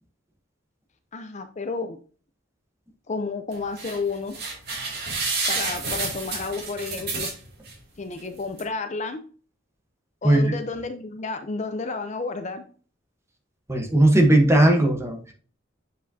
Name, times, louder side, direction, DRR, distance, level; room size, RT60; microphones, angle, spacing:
voice 1, 1.1-2.0 3.1-4.4 5.5-7.3 8.0-9.2 10.2-12.6, left 3 dB, 40° left, 8 dB, 0.6 m, -31 dB
sound 1, 3.5-4.0 4.3-7.7 8.2-8.3 8.6-8.7, right 3 dB, 55° right, 2.6 m, -29 dB
voice 2, 10.2-10.6 13.7-15.3, right 1 dB, 15° right, 4 dB, 1.0 m, -18 dB
7.9 x 5.0 x 2.7 m, 0.40 s
head